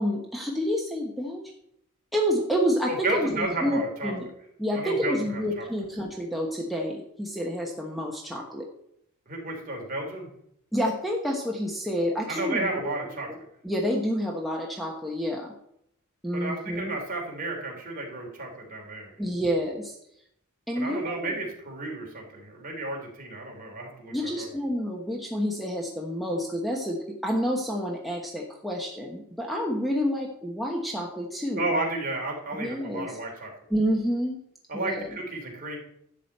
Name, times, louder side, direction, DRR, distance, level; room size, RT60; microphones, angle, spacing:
voice 1, 0.0-1.4 2.1-4.3 4.6-8.7 10.7-12.9 13.3-13.4 13.6-15.5 16.2-17.0 19.2-20.0 20.7-21.4 24.1-31.6 32.5-33.2 33.7-34.4 34.7-35.2, equal, ahead, -1 dB, 1.1 m, -29 dB
voice 2, 2.9-4.1 4.7-5.7 9.3-10.3 12.3-13.4 16.3-19.1 20.7-24.5 31.6-33.5 34.7-35.8, right 2 dB, 40° right, 0 dB, 3.0 m, -32 dB
11.5 x 5.0 x 7.9 m, 0.73 s
head